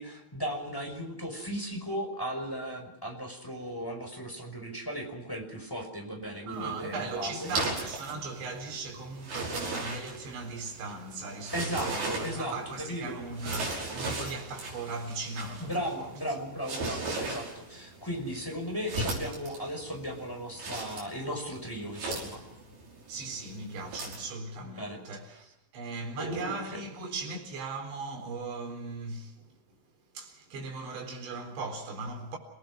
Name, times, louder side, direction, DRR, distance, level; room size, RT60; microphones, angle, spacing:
voice 1, 0.0-7.5 11.5-13.2 15.6-22.4 24.6-25.0 26.2-26.8, equal, 5° left, 5.0 m, -36 dB
sound 1, 6.5-24.3, right 2 dB, 60° right, 7.5 m, -38 dB
voice 2, 6.5-16.1 21.2-21.4 23.1-29.5 30.1-32.4, right 3 dB, 80° right, 6.5 m, -38 dB
30.0 x 18.5 x 6.2 m
omnidirectional pair, 5.2 m